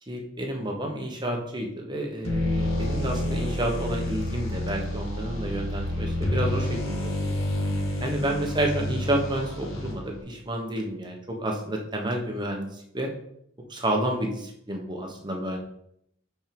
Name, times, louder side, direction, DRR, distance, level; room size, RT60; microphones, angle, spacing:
voice 1, 0.1-7.4 8.0-13.1 13.7-15.6, right 1 dB, 20° right, 1 dB, 1.1 m, -30 dB
sound 1, 2.2-10.2, left 1 dB, 85° left, 1.7 m, -29 dB
5.3 x 4.6 x 5.3 m, 0.73 s
head